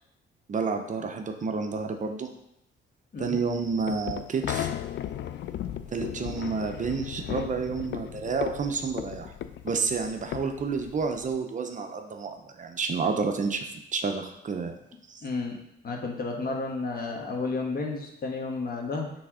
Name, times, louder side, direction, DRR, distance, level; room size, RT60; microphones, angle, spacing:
voice 1, 0.5-2.3 3.2-4.7 5.9-9.3 9.6-14.8 15.1-15.2, right 5 dB, 40° right, 5 dB, 0.6 m, -30 dB
sound 1, 3.2-11.4, left 11 dB, 65° left, 0.4 m, -36 dB
voice 2, 15.2-15.6 15.8-19.1, left 3 dB, 50° left, 1 dB, 1.3 m, -32 dB
6.2 x 3.4 x 4.8 m, 0.80 s
cardioid pair, 90°, 20 cm